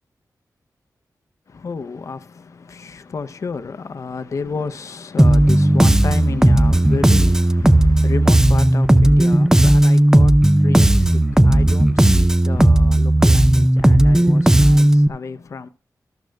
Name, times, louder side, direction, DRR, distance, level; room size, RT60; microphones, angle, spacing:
voice 1, 1.5-15.7, left 4 dB, 50° left, 0.6 m, -31 dB
Bass guitar, 5.2-15.1, right 1 dB, 10° right, 0.4 m, -14 dB
13.0 x 12.5 x 2.2 m
wide cardioid pair, 145°, 7 cm